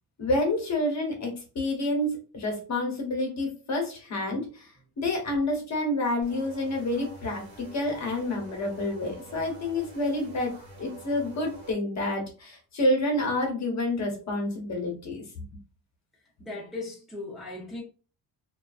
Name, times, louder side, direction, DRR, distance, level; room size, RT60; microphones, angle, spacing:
voice 1, 0.2-4.7 5.0-10.5 10.8-15.4, left 1 dB, 40° left, 1.0 m, -28 dB
sound 1, 6.2-11.7, right 2 dB, 60° right, 1.2 m, -47 dB
voice 2, 16.4-17.8, left 2 dB, ahead, 0.6 m, -37 dB
2.3 x 2.2 x 2.4 m
cardioid pair, 115°, 41 cm